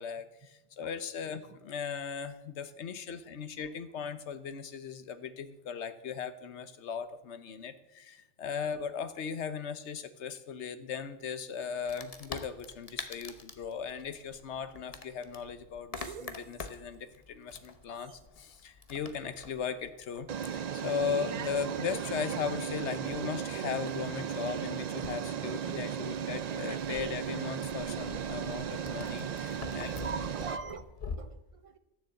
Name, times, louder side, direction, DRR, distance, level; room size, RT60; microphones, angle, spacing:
voice 1, 0.0-20.3 20.5-29.9, left 7 dB, 70° left, 11 dB, 1.2 m, -38 dB
Wood, 11.9-31.2, left 4 dB, 35° left, 0.9 m, -47 dB
sound 1, 16.0-16.4 18.1-18.2 20.3-30.6, right 8 dB, 70° right, 0.3 m, -36 dB
voice 2, 30.0-31.8, right 5 dB, 35° right, 10 dB, 0.8 m, -42 dB
13.0 x 7.0 x 7.7 m, 0.94 s
omnidirectional pair, 1.2 m